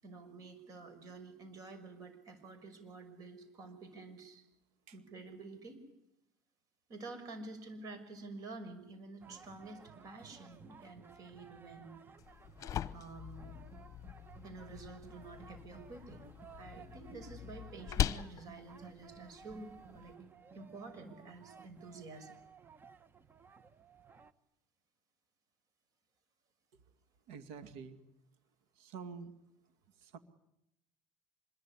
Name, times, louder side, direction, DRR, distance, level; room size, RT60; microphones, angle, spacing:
voice 1, 0.0-4.4 4.9-5.8 6.9-12.0 12.9-13.6 14.4-16.2 16.6-20.2 20.5-22.3, right 3 dB, 45° right, 10 dB, 6.0 m, -49 dB
sound 1, 9.2-24.3, right 6 dB, 25° right, 1.2 m, -57 dB
sound 2, 12.2-20.1, left 11 dB, 40° left, 1.0 m, -41 dB
voice 2, 27.3-28.0 28.8-29.3 30.0-30.2, right 6 dB, 85° right, 10 dB, 2.3 m, -47 dB
26.0 x 22.0 x 9.9 m, 0.82 s
cardioid pair, 120°, 8 cm